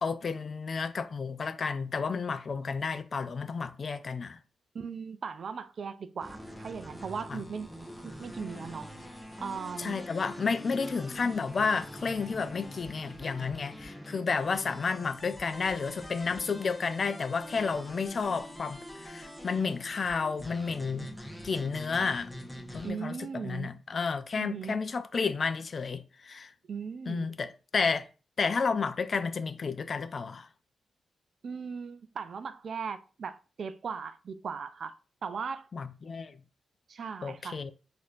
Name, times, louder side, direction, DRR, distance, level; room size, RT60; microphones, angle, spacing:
voice 1, 0.0-4.4 7.3-7.4 9.8-21.1 21.4-22.3 22.7-26.5 27.1-28.1 28.4-30.5 35.7-36.4 37.2-37.7, left 5 dB, 55° left, 0.4 m, -31 dB
voice 2, 4.7-8.9 9.4-10.0 22.8-23.7 24.4-24.8 26.7-27.3 31.4-35.0 35.2-35.7 36.9-37.6, right 6 dB, 65° right, 0.3 m, -38 dB
sound 1, 6.2-22.9, equal, 5° left, 0.9 m, -44 dB
4.2 x 2.5 x 2.5 m
cardioid pair, 65°, 0 cm